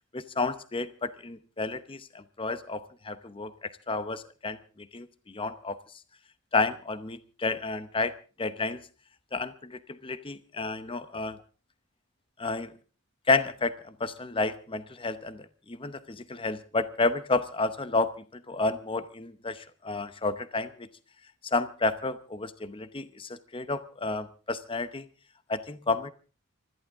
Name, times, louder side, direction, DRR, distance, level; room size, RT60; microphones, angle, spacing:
voice 1, 0.1-4.6 4.9-5.8 6.5-8.1 8.4-8.8 9.3-11.4 12.4-12.7 13.3-20.9 21.4-25.0 25.5-26.1, left 3 dB, 25° left, 13 dB, 0.8 m, -31 dB
25.0 x 14.0 x 3.6 m, 0.36 s
head